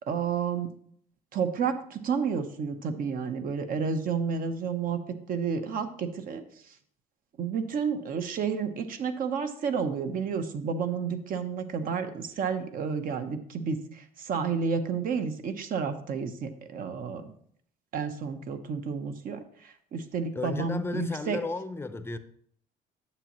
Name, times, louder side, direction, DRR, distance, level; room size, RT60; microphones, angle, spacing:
voice 1, 0.0-0.7 1.3-5.0 5.3-6.4 7.4-17.3 17.9-21.4, right 6 dB, 55° right, 0.9 m, -31 dB
voice 2, 20.3-22.2, left 3 dB, 15° left, 0.6 m, -33 dB
9.8 x 7.2 x 3.0 m
cardioid pair, 110°, 17 cm